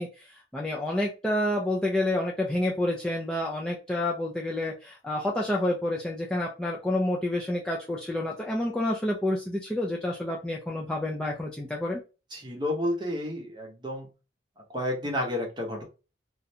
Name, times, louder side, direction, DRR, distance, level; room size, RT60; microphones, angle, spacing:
voice 1, 0.0-12.0, left 1 dB, 5° left, -3 dB, 0.3 m, -29 dB
voice 2, 12.3-14.1 14.7-15.8, left 1 dB, 25° right, 0 dB, 0.7 m, -31 dB
2.4 x 2.1 x 2.7 m, 0.31 s
head